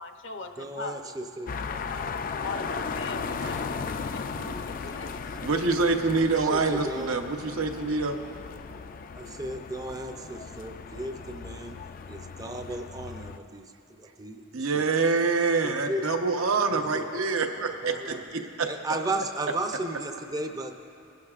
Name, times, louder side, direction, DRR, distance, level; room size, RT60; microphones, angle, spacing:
voice 1, 0.0-1.1 1.6-5.3, left 4 dB, 60° left, 5 dB, 0.7 m, -41 dB
voice 2, 0.6-1.5 6.4-7.2 9.2-11.8 12.1-13.6 13.9-14.9 15.6-16.0 16.7-17.1 17.8-18.3 18.6-21.0, right 2 dB, 15° right, 4 dB, 0.5 m, -35 dB
sound 1, 1.5-13.4, left 5 dB, 40° left, 0.3 m, -36 dB
voice 3, 5.4-8.2 8.7-8.8 14.5-18.7, right 4 dB, 80° right, 5 dB, 0.9 m, -26 dB
21.5 x 11.5 x 2.4 m, 2.5 s
head